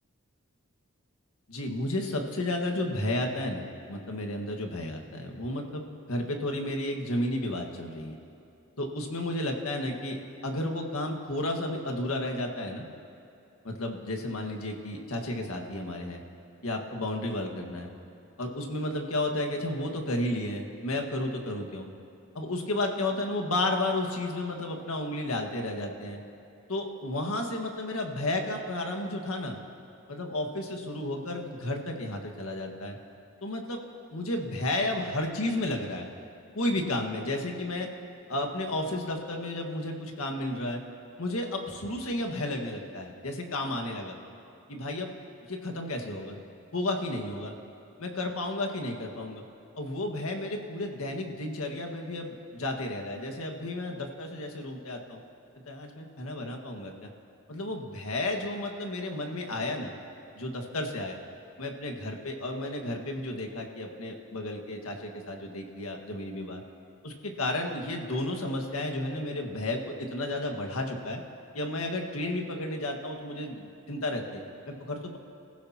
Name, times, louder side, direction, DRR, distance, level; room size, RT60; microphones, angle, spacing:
voice 1, 1.5-3.6 3.9-8.2 8.8-10.2 10.4-12.8 13.6-16.2 16.6-17.9 18.4-21.9 22.3-26.2 26.7-29.6 30.1-33.0 33.4-33.8 34.1-36.1 36.5-37.9 38.3-40.8 41.2-44.2 44.7-45.1 45.5-46.4 46.7-47.5 48.0-49.4 49.8-55.2 55.7-57.1 57.5-59.9 60.3-61.2 61.6-66.6 67.0-71.2 71.5-75.2, left 1 dB, 90° left, 3 dB, 1.7 m, -32 dB
28.5 x 15.5 x 2.9 m, 2.7 s
head